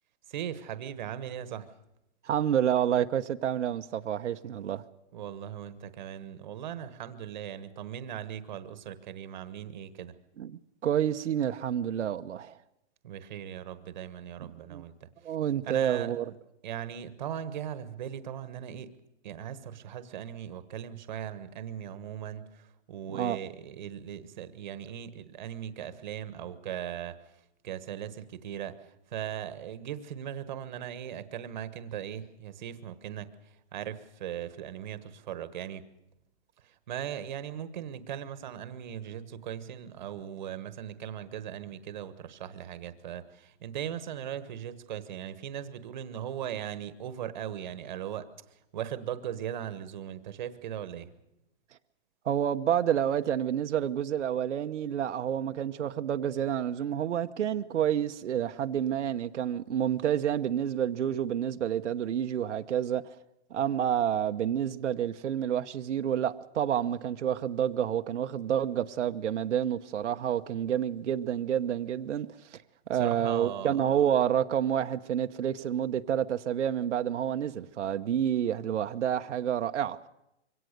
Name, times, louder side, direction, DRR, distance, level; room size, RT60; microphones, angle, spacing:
voice 1, 0.3-1.7 5.1-10.1 13.0-15.1 15.6-16.4 16.6-18.9 19.2-27.2 27.6-28.8 29.1-33.3 33.7-35.9 36.6-48.3 48.7-51.1 72.9-73.8, right 10 dB, 40° right, 1.3 m, -39 dB
voice 2, 2.2-4.8 10.4-12.5 14.4-14.8 15.2-16.2 23.1-23.4 52.2-63.1 63.5-72.3 72.9-80.0, right 9 dB, 85° right, 1.0 m, -29 dB
24.0 x 17.5 x 6.6 m
hypercardioid pair, 175°, 35 cm